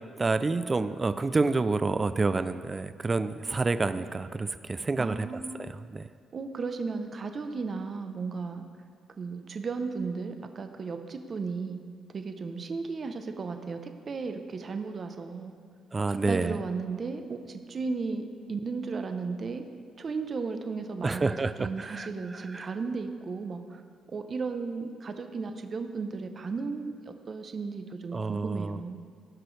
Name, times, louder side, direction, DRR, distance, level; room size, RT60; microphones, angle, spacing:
voice 1, 0.2-5.3 5.6-6.0 15.9-16.6 21.0-22.1 22.5-22.7 28.1-28.8, right 3 dB, 25° right, 12 dB, 0.4 m, -28 dB
voice 2, 5.0-5.7 6.3-8.6 9.2-11.8 12.1-15.6 16.1-19.7 20.0-23.8 24.1-29.0, right 4 dB, 45° right, 7 dB, 0.8 m, -35 dB
17.0 x 6.0 x 3.3 m, 2.2 s
cardioid pair, 90°, 0 cm